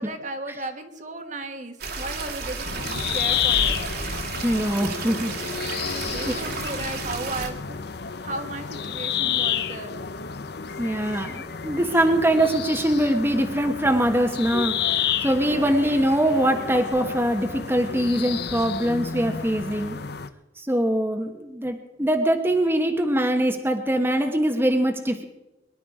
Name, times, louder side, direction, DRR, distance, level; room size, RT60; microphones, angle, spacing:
voice 1, 0.0-3.8 6.0-7.8 8.2-9.9 15.4-15.9, right 2 dB, 45° right, 6 dB, 1.4 m, -35 dB
sound 1, 1.8-7.5, right 3 dB, 60° right, 2.2 m, -32 dB
sound 2, 2.6-20.3, left 8 dB, 65° left, 0.8 m, -30 dB
voice 2, 4.4-5.3 5.7-5.8 6.3-6.4 10.8-20.0 20.6-25.2, right 1 dB, 15° right, 4 dB, 1.2 m, -23 dB
23.5 x 11.0 x 4.9 m, 0.98 s
head